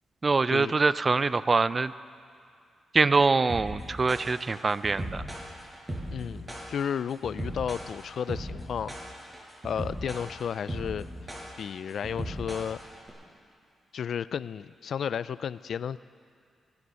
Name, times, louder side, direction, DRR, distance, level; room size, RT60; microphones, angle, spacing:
voice 1, 0.2-1.9 2.9-5.2, right 4 dB, 35° right, 16 dB, 0.4 m, -24 dB
sound 1, 3.5-13.1, right 1 dB, 20° right, 5.3 m, -37 dB
voice 2, 6.1-8.9 9.6-11.1 11.6-12.8 13.9-16.0, left 8 dB, 70° left, 17 dB, 0.3 m, -33 dB
23.5 x 9.6 x 6.4 m, 2.2 s
cardioid pair, 65°, 0 cm